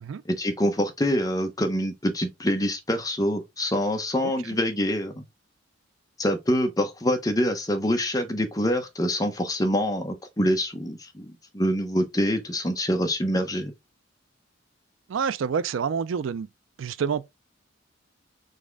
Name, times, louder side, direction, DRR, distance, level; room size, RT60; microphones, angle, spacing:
voice 1, 0.3-5.2 6.2-13.7, equal, 20° left, 0.8 m, -25 dB
voice 2, 15.1-16.5 16.8-17.3, right 6 dB, 80° right, 0.4 m, -28 dB
4.1 x 3.5 x 3.4 m
head